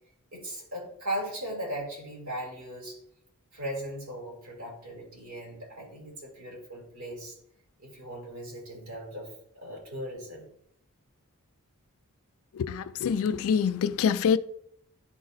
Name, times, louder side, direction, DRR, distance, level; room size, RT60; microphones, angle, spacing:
voice 1, 0.3-3.0 3.5-7.4 7.8-9.3 9.5-10.4, right 1 dB, 65° right, 2.6 m, -38 dB
voice 2, 12.5-14.4, left 7 dB, 65° left, 0.3 m, -25 dB
11.5 x 4.0 x 2.5 m
head